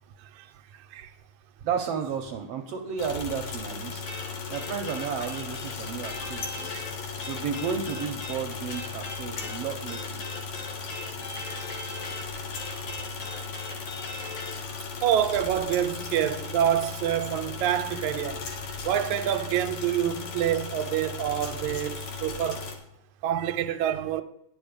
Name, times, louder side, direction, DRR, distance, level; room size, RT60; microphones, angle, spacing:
voice 1, 1.6-4.0 4.5-6.9 7.3-10.2, right 7 dB, 70° right, 1.5 m, -33 dB
sound 1, 3.0-22.8, left 5 dB, 75° left, 2.5 m, -37 dB
sound 2, 4.1-14.6, left 2 dB, 55° left, 2.7 m, -40 dB
voice 2, 15.0-18.6 18.8-22.7 23.2-24.2, right 10 dB, 90° right, 2.0 m, -27 dB
9.9 x 7.1 x 5.1 m
omnidirectional pair, 3.3 m